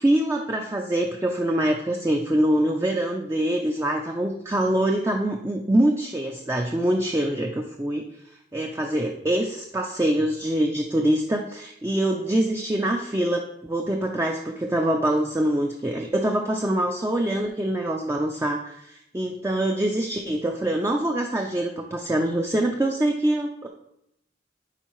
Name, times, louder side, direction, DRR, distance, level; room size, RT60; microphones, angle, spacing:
voice 1, 0.0-8.1 8.5-23.7, right 1 dB, 15° right, 1 dB, 0.4 m, -24 dB
10.0 x 4.3 x 3.1 m, 0.79 s
head